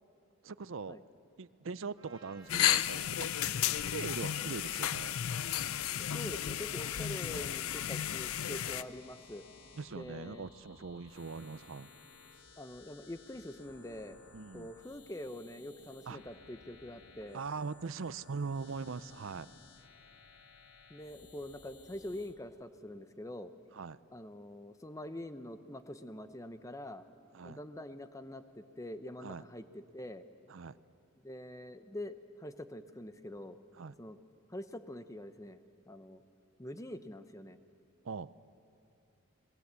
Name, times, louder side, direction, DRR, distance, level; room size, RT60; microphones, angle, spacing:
voice 1, 0.4-1.0 1.4-5.2 9.8-11.9 14.3-14.7 16.1-16.2 17.3-19.5 23.7-24.0 27.3-27.6 29.2-29.4 30.5-30.8 33.8-33.9 38.0-38.3, right 4 dB, 65° right, 16 dB, 0.5 m, -41 dB
Trumpet, 2.0-6.2, right 3 dB, 25° right, 3.3 m, -60 dB
sound 1, 2.4-22.4, left 4 dB, 60° left, 1.5 m, -58 dB
sound 2, 2.5-8.8, left 11 dB, 85° left, 0.5 m, -33 dB
voice 2, 6.0-9.5 9.9-10.5 12.6-14.2 14.5-17.4 20.9-23.5 24.1-27.0 27.4-30.2 31.2-33.6 34.0-34.2 34.5-35.6 35.9-36.2 36.6-37.6, left 1 dB, 15° left, 10 dB, 0.8 m, -45 dB
28.5 x 20.0 x 8.2 m, 2.8 s
head